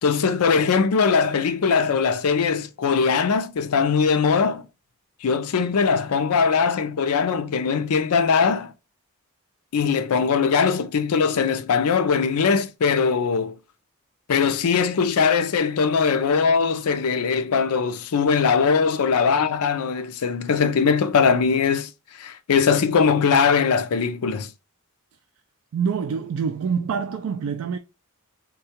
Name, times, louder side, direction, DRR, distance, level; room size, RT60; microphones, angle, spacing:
voice 1, 0.0-4.7 5.2-8.7 9.7-13.6 14.3-21.9 22.2-24.5, left 5 dB, 80° left, 0.5 m, -21 dB
voice 2, 25.7-27.8, right 6 dB, 65° right, 0.3 m, -26 dB
3.7 x 2.2 x 2.8 m
head